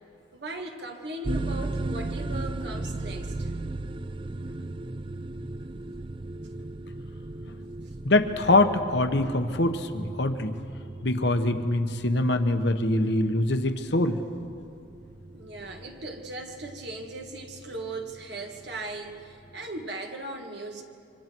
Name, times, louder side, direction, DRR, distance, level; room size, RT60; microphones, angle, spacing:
voice 1, 0.3-3.5 15.3-20.8, right 2 dB, 55° right, 3 dB, 1.9 m, -38 dB
sound 1, 1.2-19.8, right 2 dB, 25° right, 0.4 m, -37 dB
voice 2, 8.0-10.5 11.0-14.2, left 2 dB, 60° left, 8 dB, 1.2 m, -24 dB
26.5 x 25.0 x 4.6 m, 2.5 s
head